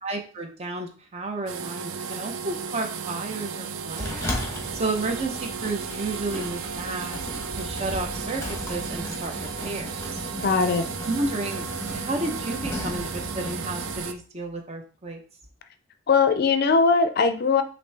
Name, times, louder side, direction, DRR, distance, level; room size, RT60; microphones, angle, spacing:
voice 1, 0.0-7.2 7.6-10.2 11.0-11.7 11.9-15.2, right 2 dB, 30° right, 4 dB, 0.7 m, -32 dB
sound 1, 1.5-14.1, right 6 dB, 80° right, 0.4 m, -34 dB
Sliding door, 3.9-14.0, left 1 dB, 15° left, 0.9 m, -36 dB
voice 2, 10.4-10.8 16.1-17.6, left 4 dB, 50° left, 9 dB, 0.4 m, -20 dB
5.9 x 2.6 x 3.3 m, 0.39 s
head